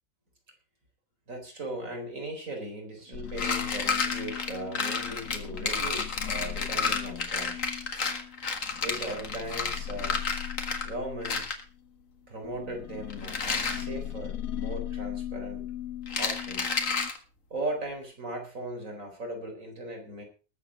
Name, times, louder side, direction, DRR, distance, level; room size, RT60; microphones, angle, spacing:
voice 1, 1.3-7.7 8.8-10.2 10.8-11.4 12.3-15.6 16.2-16.8 17.5-20.2, right 1 dB, 70° right, 3 dB, 4.4 m, -38 dB
sound 1, 3.1-11.9 12.4-17.1, left 11 dB, 85° left, 1.4 m, -39 dB
sound 2, 3.3-10.9 11.2-11.6 13.1-13.8 16.1-17.2, left 4 dB, 65° left, 2.1 m, -31 dB
20.0 x 7.6 x 4.8 m, 0.35 s
omnidirectional pair, 1.4 m